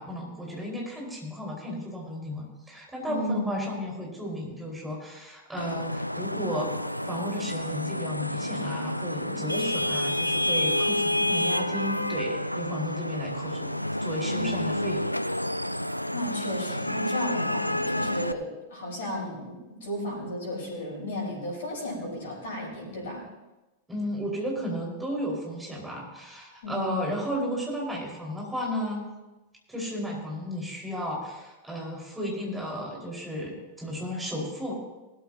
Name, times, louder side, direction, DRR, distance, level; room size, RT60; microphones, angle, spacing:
voice 1, 0.0-6.7 7.1-13.7 14.0-15.1 23.9-29.1 29.7-34.7, equal, 5° right, -3 dB, 5.0 m, -34 dB
voice 2, 3.1-3.6 9.2-9.4 16.1-23.2 26.6-26.9, left 1 dB, 60° left, -4 dB, 4.7 m, -34 dB
Vehicle horn car horn honking / Traffic noise roadway noise, 5.6-18.3, left 1 dB, 90° left, 0.3 m, -29 dB
19.0 x 13.5 x 2.9 m, 1.1 s
figure-of-eight pair, 90°, 0 cm